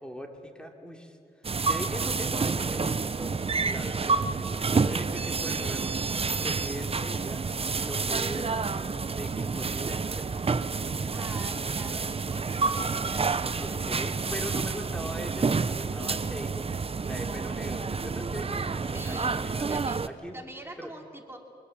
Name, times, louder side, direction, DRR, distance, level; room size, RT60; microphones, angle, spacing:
voice 1, 0.0-1.2 1.4-7.5 7.8-11.2 13.6-16.7 17.0-19.7 20.0-20.4 20.8-20.9, equal, 5° left, 2 dB, 3.0 m, -41 dB
sound 1, 1.4-20.1, right 4 dB, 35° right, 0.8 m, -29 dB
voice 2, 11.1-14.1 14.5-14.9 18.9-19.3 19.7-20.0 20.3-21.4, right 1 dB, 15° right, 2 dB, 3.0 m, -45 dB
24.0 x 21.5 x 7.3 m, 2.4 s
wide cardioid pair, 90°, 17 cm